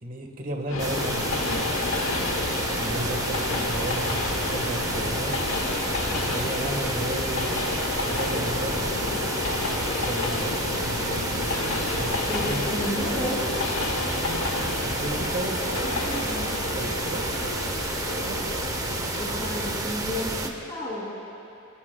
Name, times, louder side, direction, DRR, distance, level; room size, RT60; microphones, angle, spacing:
voice 1, 0.0-1.8 2.7-5.4 6.1-7.5 8.0-9.2 10.0-11.3 11.7-12.8 13.9-14.4 14.8-18.4, right 1 dB, 40° right, 2 dB, 1.5 m, -34 dB
Train, 0.7-19.8, left 3 dB, 80° left, 1.1 m, -30 dB
sound 1, 0.8-20.5, right 2 dB, 15° right, 0.8 m, -30 dB
voice 2, 12.3-13.5 19.2-21.1, left 1 dB, 20° left, -7 dB, 2.9 m, -31 dB
28.0 x 16.0 x 2.3 m, 2.7 s
head